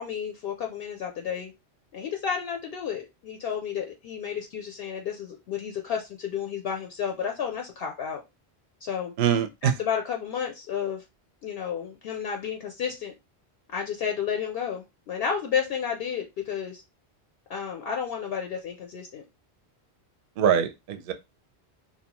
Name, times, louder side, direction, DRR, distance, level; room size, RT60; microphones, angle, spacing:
voice 1, 0.0-1.5 1.9-8.2 8.8-9.1 9.6-11.0 11.4-13.1 13.7-16.8 17.5-19.2, left 7 dB, 65° left, 0.7 m, -31 dB
voice 2, 9.2-9.7 20.4-21.1, right 8 dB, 60° right, 0.6 m, -23 dB
2.7 x 2.2 x 2.8 m
omnidirectional pair, 1.1 m